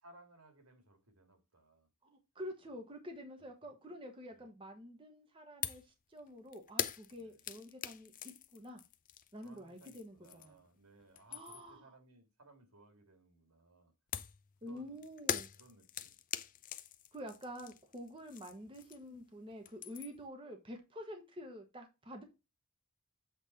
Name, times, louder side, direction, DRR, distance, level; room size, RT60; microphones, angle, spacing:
voice 1, 0.0-1.9 2.7-2.8 3.4-3.7 4.3-4.5 7.1-7.4 9.4-13.9 14.6-15.0 15.6-16.2 18.5-18.7, right 2 dB, 90° right, 2.2 m, -63 dB
voice 2, 2.1-8.8 9.3-10.6 11.3-11.9 14.6-15.5 17.1-22.2, equal, 25° right, 1.3 m, -48 dB
sound 1, 5.6-5.9 6.2-10.7 11.0-11.8 14.1-19.2 19.5-20.3, left 10 dB, 35° left, 0.5 m, -42 dB
8.1 x 3.4 x 4.3 m
head